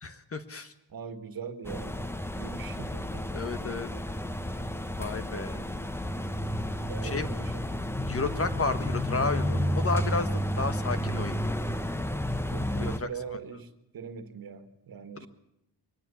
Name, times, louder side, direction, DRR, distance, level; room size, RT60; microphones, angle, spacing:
voice 1, 0.0-0.7 3.3-3.9 5.0-5.6 7.0-7.3 8.1-11.4 12.8-13.1, left 3 dB, 35° left, 1.5 m, -32 dB
voice 2, 0.9-3.3 6.9-7.8 12.5-15.3, right 6 dB, 65° right, 1.9 m, -41 dB
sound 1, 1.6-13.0, equal, 5° left, 0.9 m, -31 dB
23.0 x 19.0 x 7.2 m
wide cardioid pair, 135°, 38 cm